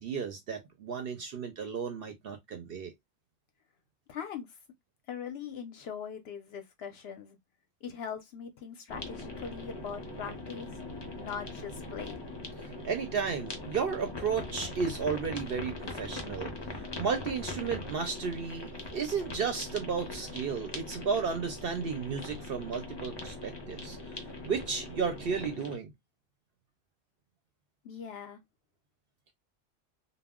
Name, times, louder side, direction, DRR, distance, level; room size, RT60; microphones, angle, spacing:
voice 1, 0.0-2.9 12.6-25.9, right 6 dB, 60° right, 0.6 m, -33 dB
voice 2, 4.1-4.5 5.1-7.4 7.8-10.8 11.2-12.2 27.8-28.4, left 7 dB, 65° left, 0.7 m, -41 dB
sound 1, 8.9-25.8, left 2 dB, 35° left, 0.4 m, -41 dB
2.2 x 2.0 x 3.5 m
omnidirectional pair, 1.3 m